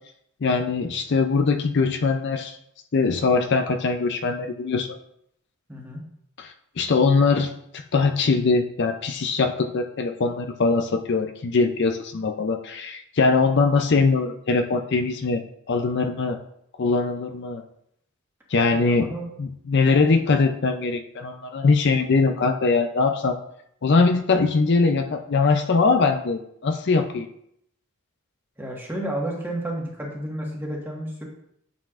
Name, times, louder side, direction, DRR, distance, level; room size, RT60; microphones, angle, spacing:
voice 1, 0.4-2.6 2.9-4.9 6.4-15.4 15.7-16.4 16.8-17.6 18.5-19.1 19.4-23.4 23.8-27.3, left 4 dB, 55° left, 6 dB, 0.5 m, -22 dB
voice 2, 5.7-6.0 18.7-19.3 19.9-20.1 28.6-31.2, right 1 dB, 10° right, -2 dB, 1.5 m, -31 dB
9.3 x 6.8 x 2.5 m, 0.73 s
head